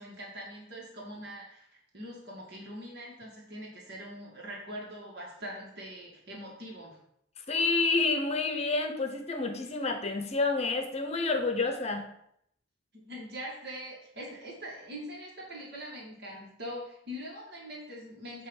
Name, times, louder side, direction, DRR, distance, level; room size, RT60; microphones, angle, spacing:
voice 1, 0.0-7.0 12.9-18.5, equal, 60° right, -3 dB, 2.0 m, -43 dB
voice 2, 7.5-12.1, left 3 dB, 35° left, 5 dB, 0.8 m, -29 dB
8.4 x 3.0 x 6.3 m, 0.74 s
head